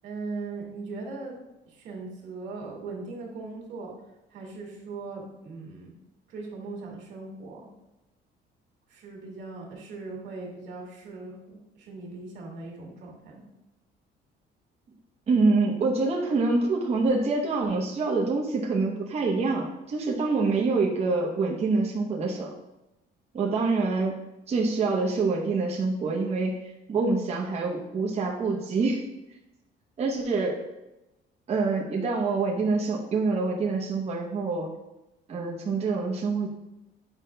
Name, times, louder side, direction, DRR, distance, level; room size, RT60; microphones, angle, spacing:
voice 1, 0.0-1.4 1.7-3.9 4.3-5.9 6.3-7.6 8.9-13.4, right 3 dB, 85° right, -1 dB, 1.8 m, -39 dB
voice 2, 15.3-22.5 23.3-24.2 24.5-29.0 30.0-30.6 31.5-34.7 35.3-36.5, right 3 dB, 35° right, -3 dB, 0.9 m, -26 dB
8.3 x 5.1 x 2.2 m, 0.97 s
cardioid pair, 135°, 19 cm